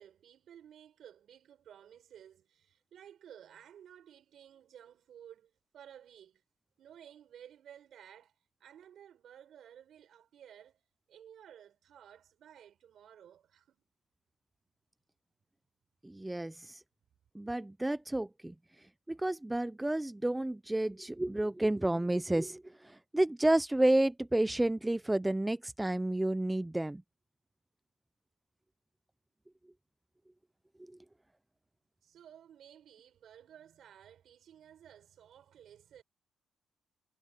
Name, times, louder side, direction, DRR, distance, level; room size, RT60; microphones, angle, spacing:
voice 1, 0.0-6.4 6.8-10.8 11.1-13.8 32.0-36.0, right 9 dB, 65° right, 5.4 m, -55 dB
voice 2, 16.0-16.8 17.4-18.5 19.1-22.6 23.1-27.0, right 1 dB, 10° right, 0.5 m, -30 dB
cardioid pair, 90°, 0 cm